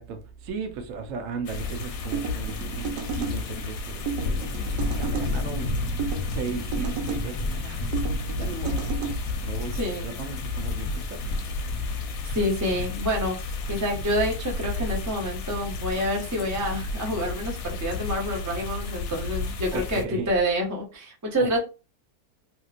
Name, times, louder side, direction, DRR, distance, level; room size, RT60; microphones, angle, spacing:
voice 1, 0.0-4.6 5.0-5.7 6.3-7.8 8.4-9.1 9.4-9.7 10.0-11.2 12.7-12.9 19.7-20.3 21.4-21.6, right 5 dB, 65° right, 1.0 m, -36 dB
sound 1, 1.4-20.0, left 3 dB, 70° left, 1.0 m, -31 dB
sound 2, 2.1-3.4 4.1-5.3 6.0-7.2 7.9-9.1, right 7 dB, 90° right, 1.3 m, -33 dB
voice 2, 9.8-10.1 12.3-13.4 13.7-21.6, equal, 25° right, 0.3 m, -27 dB
3.0 x 2.8 x 2.4 m
omnidirectional pair, 1.7 m